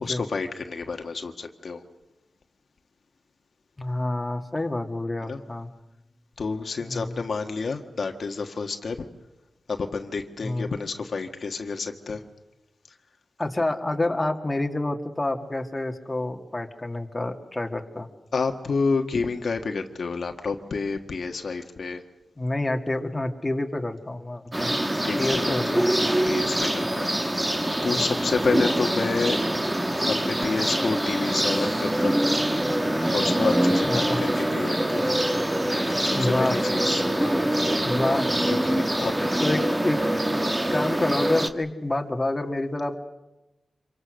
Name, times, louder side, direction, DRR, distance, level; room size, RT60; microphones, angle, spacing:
voice 1, 0.0-1.8 5.2-5.4 6.4-9.1 9.7-12.2 18.3-22.0 25.0-25.8 26.3-27.1 27.4-29.4 30.1-32.1 33.1-35.2 36.0-37.5 38.5-39.1, left 4 dB, 65° left, 5 dB, 1.5 m, -29 dB
voice 2, 3.8-5.7 6.8-7.2 10.4-10.7 13.4-18.1 22.4-24.7 25.2-25.9 27.9-28.3 33.8-34.2 36.1-36.7 37.8-38.3 39.4-40.0 40.7-43.0, left 2 dB, 20° left, 3 dB, 1.9 m, -28 dB
sound 1, 24.5-41.5, right 1 dB, 15° right, 1.4 m, -24 dB
26.5 x 23.5 x 6.4 m, 0.99 s
wide cardioid pair, 90°, 0 cm